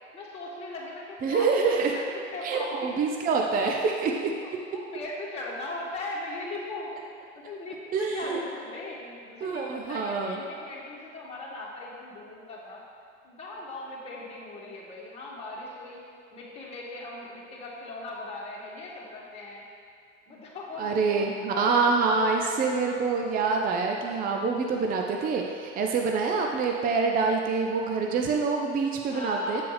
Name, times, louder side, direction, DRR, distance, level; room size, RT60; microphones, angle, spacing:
voice 1, 0.1-3.2 3.6-3.8 4.4-6.9 7.4-12.8 13.2-16.0 16.3-19.6 20.3-22.6 23.4-23.5 29.1-29.6, left 2 dB, 15° left, -7 dB, 2.0 m, -39 dB
voice 2, 1.2-1.9 2.4-4.3 7.9-8.4 9.4-10.4 20.8-29.6, right 4 dB, 25° right, 1 dB, 0.6 m, -26 dB
8.2 x 6.7 x 3.3 m, 2.3 s
hypercardioid pair, 85°, 37 cm